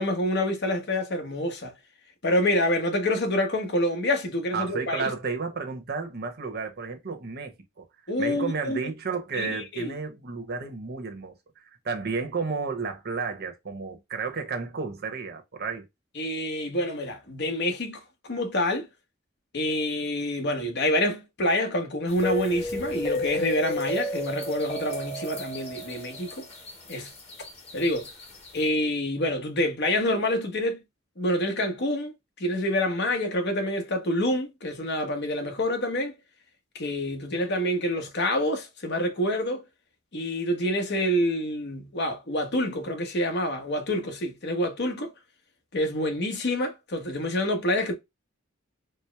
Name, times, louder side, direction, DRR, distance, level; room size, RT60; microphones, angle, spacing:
voice 1, 0.0-1.7 2.2-5.1 8.1-8.8 9.3-10.0 16.1-18.9 19.5-26.5 26.9-27.1 27.7-28.1 28.5-30.8 31.2-32.1 32.4-36.1 36.7-39.6 40.1-45.1 45.7-47.9, left 1 dB, 55° left, 1.0 m, -27 dB
voice 2, 4.5-7.8 8.2-11.3 11.8-15.8, right 4 dB, 50° right, 0.9 m, -32 dB
sound 1, 22.1-28.7, left 1 dB, 30° left, 1.2 m, -33 dB
4.4 x 2.1 x 3.3 m
head